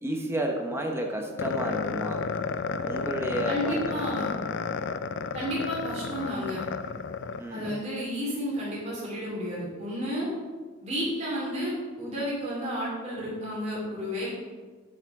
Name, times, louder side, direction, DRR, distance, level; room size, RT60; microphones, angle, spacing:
voice 1, 0.0-2.2 2.9-3.8 7.4-7.8, right 1 dB, 10° right, 2 dB, 0.9 m, -31 dB
sound 1, 1.4-7.8, left 5 dB, 60° left, 0.4 m, -32 dB
voice 2, 3.5-4.3 5.3-6.6 7.5-10.3 10.8-14.3, equal, 30° right, -6 dB, 2.8 m, -32 dB
9.5 x 4.9 x 4.8 m, 1.4 s
head